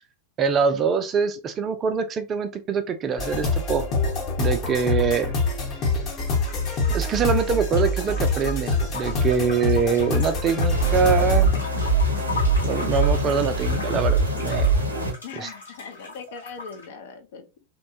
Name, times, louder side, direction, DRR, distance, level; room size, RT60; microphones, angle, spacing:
voice 1, 0.4-3.8 4.4-5.3 6.9-11.5 12.6-14.7 15.4-15.5, right 6 dB, 30° right, 0.4 m, -24 dB
sound 1, 3.2-11.6, left 3 dB, 35° left, 0.9 m, -25 dB
sound 2, 6.3-16.9, left 2 dB, 75° left, 1.1 m, -39 dB
sound 3, 10.7-15.1, right 2 dB, 80° right, 0.7 m, -22 dB
voice 2, 15.2-17.6, left 6 dB, 55° left, 0.5 m, -40 dB
2.9 x 2.2 x 2.5 m
figure-of-eight pair, 90°, 0 cm